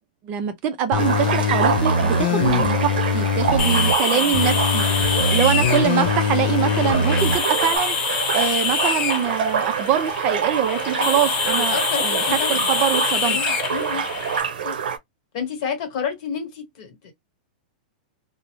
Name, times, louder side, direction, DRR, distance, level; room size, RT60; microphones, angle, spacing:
voice 1, 0.2-4.8 5.3-12.2 12.5-13.4, right 9 dB, 30° right, 0.4 m, -24 dB
sound 1, 0.9-3.9 4.3-7.4 7.8-7.9, left 4 dB, 80° left, 0.5 m, -22 dB
sound 2, 1.0-15.0, right 7 dB, 90° right, 0.6 m, -26 dB
sound 3, 3.6-14.4, left 5 dB, 30° left, 0.8 m, -25 dB
voice 2, 4.1-4.5 11.0-11.1 11.6-12.7 13.3-14.0 14.6-14.8 15.3-17.1, left 7 dB, 45° left, 1.1 m, -31 dB
2.5 x 2.0 x 2.9 m
supercardioid pair, 160°, 5 cm